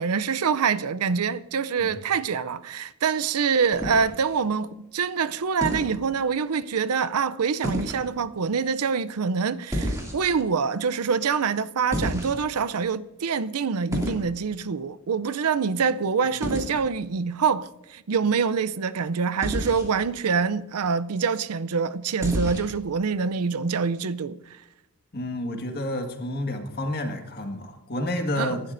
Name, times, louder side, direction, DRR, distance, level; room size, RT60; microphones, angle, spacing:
voice 1, 0.0-24.4 28.4-28.6, right 5 dB, 85° right, 0.5 m, -25 dB
sound 1, 3.7-4.4 5.6-5.9 7.6-8.1 9.7-10.4 11.9-12.6 13.9-14.3 16.4-16.7 19.4-19.9 22.2-22.8, equal, 15° right, 2.6 m, -29 dB
voice 2, 25.1-28.6, left 1 dB, 45° left, 1.8 m, -30 dB
24.5 x 12.0 x 2.6 m
head